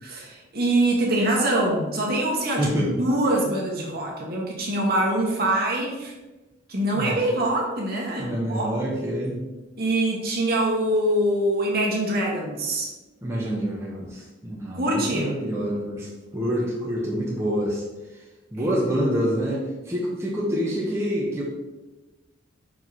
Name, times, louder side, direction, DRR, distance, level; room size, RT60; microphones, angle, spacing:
voice 1, 0.0-6.1 6.7-8.7 9.8-12.9 14.7-15.4 18.6-18.7, right 1 dB, 50° right, -2 dB, 1.5 m, -24 dB
voice 2, 2.6-3.0 6.9-7.3 8.2-9.4 13.2-17.8 18.5-21.4, equal, 15° right, -6 dB, 1.0 m, -27 dB
6.1 x 4.6 x 4.2 m, 1.1 s
head